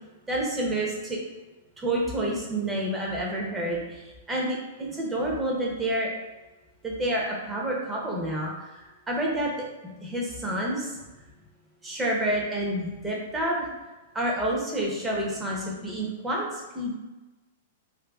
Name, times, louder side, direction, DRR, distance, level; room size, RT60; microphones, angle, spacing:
voice 1, 0.3-1.2 1.8-6.1 6.8-9.5 10.0-10.9 11.8-13.6 14.1-16.5 16.7-16.9, right 1 dB, 15° right, -2 dB, 0.8 m, -29 dB
2.6 x 2.6 x 3.5 m, 1.1 s
hypercardioid pair, 140°, 0 cm